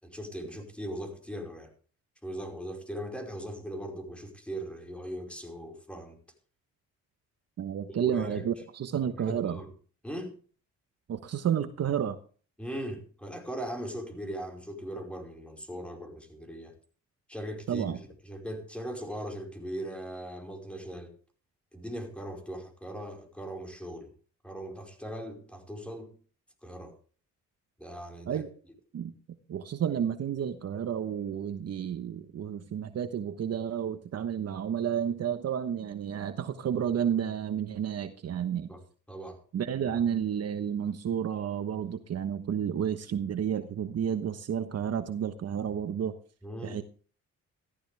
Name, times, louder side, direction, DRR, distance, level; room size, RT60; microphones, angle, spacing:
voice 1, 0.0-1.7 2.2-6.2 8.0-8.5 9.2-9.7 10.0-10.3 12.6-16.7 17.3-21.1 21.7-24.1 24.4-26.1 26.6-26.9 27.8-28.4 38.7-39.4 39.8-39.9 46.4-46.8, equal, 5° left, 3 dB, 5.1 m, -39 dB
voice 2, 7.6-9.6 11.1-12.2 17.7-18.0 28.3-28.5 28.9-29.1 29.5-38.7 39.5-46.2 46.6-46.8, right 8 dB, 55° right, 10 dB, 1.2 m, -31 dB
15.0 x 14.0 x 3.5 m, 0.41 s
cardioid pair, 90°, 30 cm